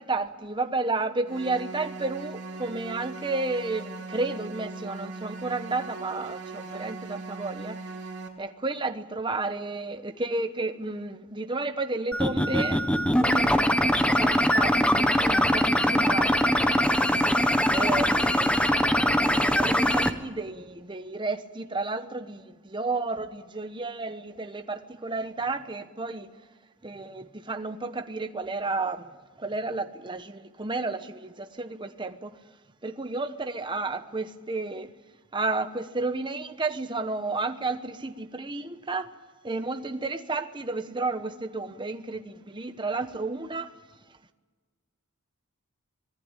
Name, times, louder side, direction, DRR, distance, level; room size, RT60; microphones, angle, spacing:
voice 1, 0.0-7.8 8.4-13.6 14.0-16.3 17.7-19.0 19.6-26.3 26.8-29.1 29.4-32.3 32.8-34.9 35.3-39.1 39.4-43.7, right 3 dB, 20° right, 1.0 m, -32 dB
sound 1, 1.3-8.3, right 3 dB, 50° right, 4.0 m, -39 dB
sound 2, 12.1-20.1, equal, 5° left, 1.1 m, -22 dB
25.5 x 18.5 x 9.0 m
head